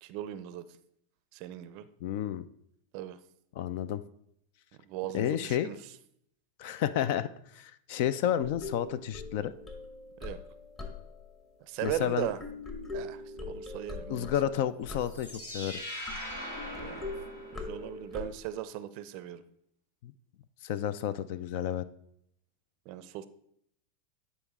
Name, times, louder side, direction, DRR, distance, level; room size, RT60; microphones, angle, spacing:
voice 1, 0.0-0.6 1.3-1.8 2.9-3.2 4.9-5.8 10.2-10.4 11.7-12.4 12.9-14.3 16.7-17.1 17.5-19.4 22.9-23.3, right 12 dB, 50° right, 14 dB, 0.5 m, -38 dB
voice 2, 2.0-2.4 3.6-4.0 5.1-5.7 6.6-9.5 11.8-12.3 14.1-15.3 15.5-15.8 20.0-20.1 20.6-21.8, left 10 dB, 55° left, 15 dB, 0.4 m, -31 dB
sound 1, 8.4-11.4 11.8-15.5 16.0-18.3, left 3 dB, 30° left, 1.5 m, -42 dB
sound 2, 14.9-18.0, equal, 80° left, 1.7 m, -41 dB
9.7 x 4.2 x 3.6 m, 0.71 s
hypercardioid pair, 90°, 0 cm